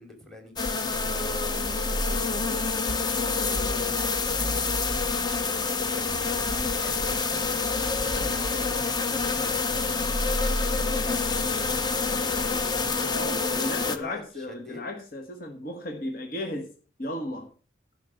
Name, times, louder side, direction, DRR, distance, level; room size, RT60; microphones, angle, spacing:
voice 1, 0.0-2.2 2.9-5.0 5.8-10.0 10.6-12.0 13.6-14.2 14.5-14.8, left 1 dB, ahead, 5 dB, 2.7 m, -45 dB
sound 1, 0.6-14.0, left 4 dB, 20° left, 0.8 m, -27 dB
sound 2, 0.9-13.6, equal, 90° left, 1.9 m, -36 dB
voice 2, 13.1-16.7 17.0-17.5, left 1 dB, 50° left, 3 dB, 1.5 m, -34 dB
11.5 x 5.8 x 7.7 m, 0.39 s
head